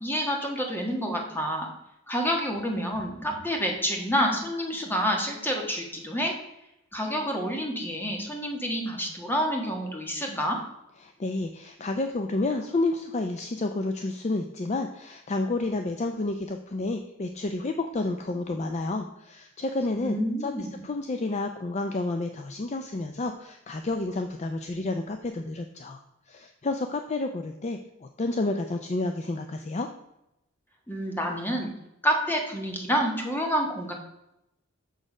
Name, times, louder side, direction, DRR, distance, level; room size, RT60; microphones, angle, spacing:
voice 1, 0.0-1.7 2.1-6.3 6.9-10.6 20.0-20.8 30.9-31.7 32.0-33.9, equal, 10° left, 1 dB, 1.4 m, -28 dB
voice 2, 11.0-20.2 20.4-26.0 26.3-29.9, left 2 dB, 35° left, 6 dB, 0.4 m, -30 dB
6.6 x 6.4 x 4.9 m, 0.86 s
head